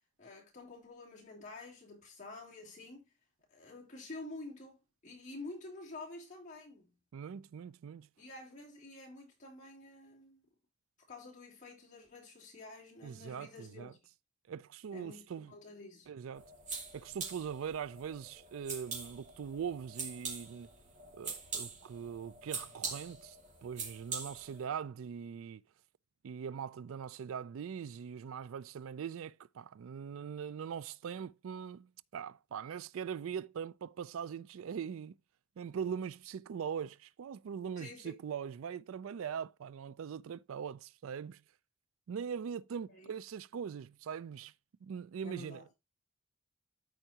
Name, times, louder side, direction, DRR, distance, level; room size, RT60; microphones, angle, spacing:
voice 1, 0.2-3.1 3.5-7.0 8.2-10.4 11.1-14.0 14.9-16.1 37.8-38.2 42.9-43.1 45.2-45.6, left 2 dB, 35° left, 3.3 m, -49 dB
voice 2, 7.1-8.1 13.0-13.9 14.5-15.5 16.1-16.5 16.9-20.7 21.1-23.4 23.6-25.6 26.2-35.2 35.6-41.4 42.1-44.5 44.8-45.7, right 7 dB, 80° right, 0.4 m, -41 dB
sound 1, 16.4-24.6, right 4 dB, 35° right, 2.2 m, -44 dB
13.5 x 4.6 x 2.8 m
head